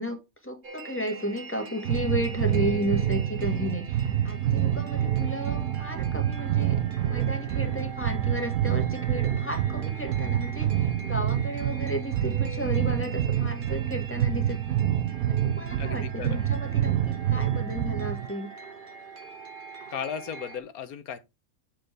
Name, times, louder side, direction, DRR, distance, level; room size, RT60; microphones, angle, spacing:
voice 1, 0.0-14.8 15.3-18.5, equal, 10° left, 1.6 m, -33 dB
sound 1, 0.6-20.6, right 3 dB, 40° right, 1.0 m, -44 dB
sound 2, 1.8-18.3, right 10 dB, 80° right, 1.2 m, -27 dB
voice 2, 15.8-16.4 19.9-21.2, left 8 dB, 80° left, 1.4 m, -35 dB
7.8 x 6.7 x 3.3 m
omnidirectional pair, 1.5 m